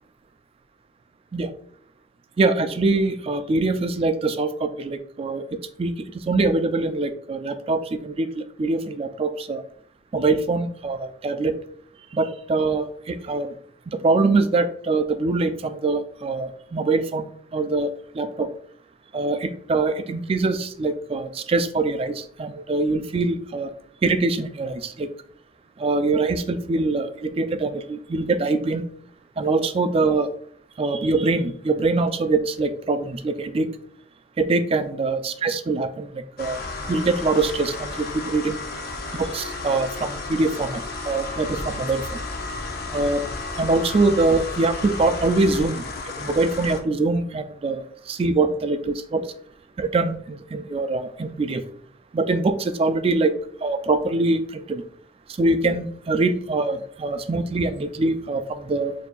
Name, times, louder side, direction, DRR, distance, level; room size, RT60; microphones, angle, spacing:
voice 1, 2.4-5.4 5.8-5.9 6.3-9.6 10.1-11.6 12.1-13.5 13.9-18.5 19.1-23.7 24.0-25.1 25.8-28.8 29.4-30.3 30.8-33.7 34.4-36.6 36.9-38.6 39.1-42.0 42.9-43.2 43.6-45.8 46.2-49.2 49.8-51.6 52.1-53.3 53.6-54.8 55.4-58.9, right 3 dB, 30° right, 10 dB, 0.3 m, -23 dB
sound 1, 36.4-46.8, left 3 dB, 55° left, 0.6 m, -33 dB
6.6 x 2.7 x 2.3 m, 0.62 s
head